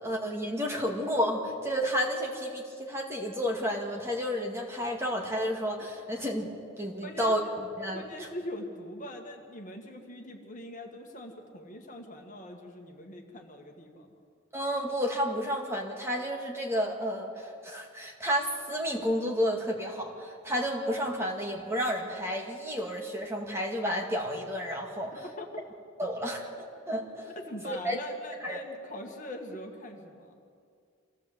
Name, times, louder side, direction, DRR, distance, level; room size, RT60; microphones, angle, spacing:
voice 1, 0.0-6.5 6.8-8.3 14.5-25.2 26.0-26.5 26.9-27.3 27.6-28.0 28.4-28.6, equal, 10° right, 0 dB, 2.2 m, -31 dB
voice 2, 7.0-7.5 7.9-14.1 25.1-25.6 27.3-30.3, left 1 dB, 35° left, 2 dB, 2.0 m, -42 dB
25.5 x 16.0 x 8.1 m, 2.3 s
head